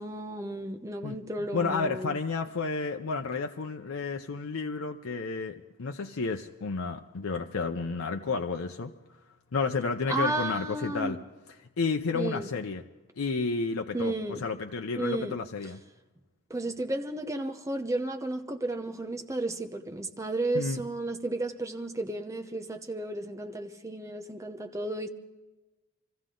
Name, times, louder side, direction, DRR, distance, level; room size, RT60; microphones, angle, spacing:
voice 1, 0.0-2.2 10.1-11.2 12.1-12.5 13.9-14.4 15.0-15.4 16.5-25.1, right 2 dB, 15° right, 0.9 m, -33 dB
voice 2, 1.5-8.9 9.5-11.2 11.8-12.8 13.2-15.8 20.5-20.8, left 4 dB, 85° left, 0.7 m, -31 dB
25.0 x 15.0 x 3.8 m
head